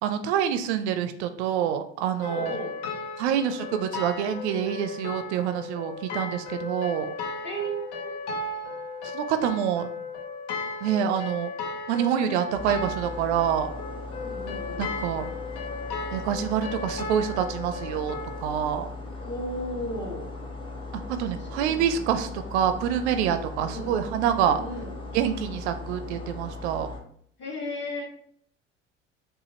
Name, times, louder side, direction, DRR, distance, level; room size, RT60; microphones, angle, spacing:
voice 1, 0.0-2.6 3.2-7.1 9.1-9.9 10.8-11.5 11.9-13.7 14.8-15.2 16.1-18.2 18.4-18.9 21.1-24.6 25.1-26.9, right 9 dB, 65° right, 9 dB, 0.5 m, -26 dB
sound 1, 2.2-18.4, left 3 dB, 65° left, 0.8 m, -35 dB
voice 2, 2.2-2.8 7.4-8.1 10.0-10.1 14.1-14.9 19.2-20.3 21.4-22.3 23.5-23.9 24.4-24.9 27.4-28.0, equal, 30° left, -1 dB, 1.5 m, -35 dB
sound 2, 12.5-27.0, left 3 dB, 15° left, 0.9 m, -38 dB
4.9 x 2.4 x 2.8 m, 0.63 s
figure-of-eight pair, 65°, 37 cm